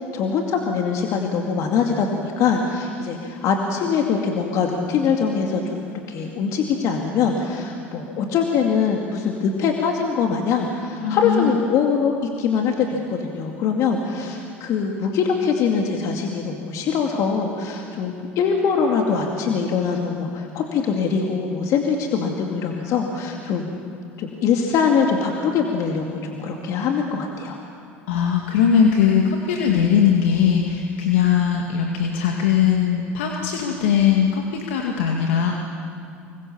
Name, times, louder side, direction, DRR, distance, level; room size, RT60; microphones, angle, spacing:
voice 1, 0.1-23.7 24.2-27.6, left 6 dB, 55° left, 1 dB, 2.4 m, -23 dB
voice 2, 11.0-11.6 28.1-35.5, left 8 dB, 80° left, 1 dB, 2.1 m, -20 dB
26.0 x 22.5 x 7.2 m, 2.5 s
hypercardioid pair, 80°, 7 cm